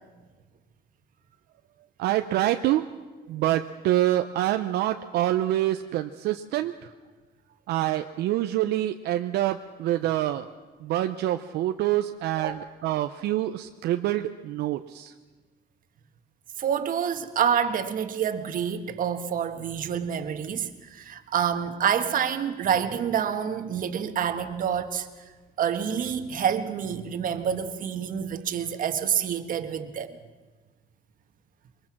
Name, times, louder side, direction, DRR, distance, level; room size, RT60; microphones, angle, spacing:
voice 1, 2.0-2.8 3.3-6.7 7.7-10.5 10.9-12.5 12.8-15.1, right 14 dB, 80° right, 0.7 m, -26 dB
voice 2, 16.6-25.1 25.6-30.2, right 8 dB, 55° right, 1.5 m, -27 dB
22.5 x 21.5 x 6.0 m
cardioid pair, 110°, 17 cm